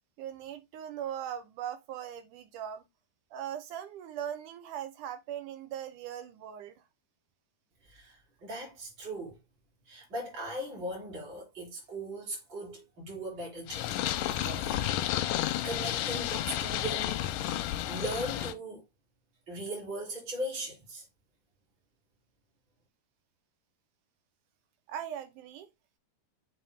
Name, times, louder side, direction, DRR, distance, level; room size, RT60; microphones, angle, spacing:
voice 1, 0.2-2.9 3.3-6.7 24.9-25.7, right 10 dB, 75° right, 2.5 m, -39 dB
voice 2, 7.8-9.4 9.9-13.9 14.4-15.2 15.6-17.3 17.9-18.8 19.5-21.1, right 1 dB, 35° right, 3.9 m, -39 dB
Purr, 13.7-18.5, left 13 dB, 90° left, 2.3 m, -31 dB
6.9 x 4.5 x 3.6 m
omnidirectional pair, 3.8 m